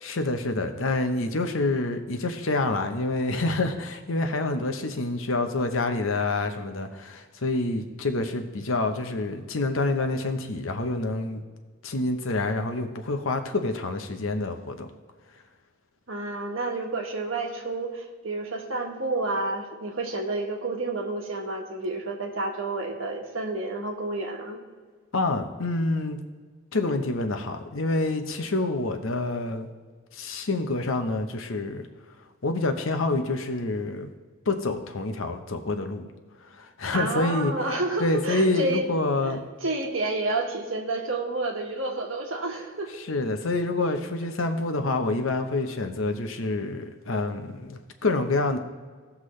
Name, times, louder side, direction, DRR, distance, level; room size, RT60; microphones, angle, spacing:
voice 1, 0.0-11.4 11.8-14.9 25.1-26.2 26.7-29.7 30.1-31.9 32.4-34.1 34.5-36.1 36.6-37.5 38.0-39.4 43.0-48.6, left 2 dB, 75° left, 6 dB, 0.9 m, -27 dB
voice 2, 16.1-24.6 36.9-38.9 39.2-43.0, right 2 dB, 70° right, 1 dB, 1.5 m, -30 dB
16.5 x 6.0 x 3.2 m, 1.5 s
head